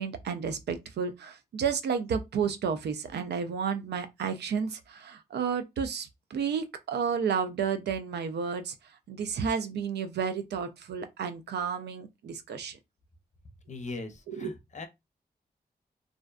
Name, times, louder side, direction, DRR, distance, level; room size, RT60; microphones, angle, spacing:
voice 1, 0.0-8.7 9.1-12.8 14.3-14.5, right 6 dB, 85° right, 0.4 m, -31 dB
voice 2, 13.7-14.9, left 3 dB, 45° left, 0.6 m, -40 dB
2.5 x 2.1 x 2.3 m
cardioid pair, 60°, 17 cm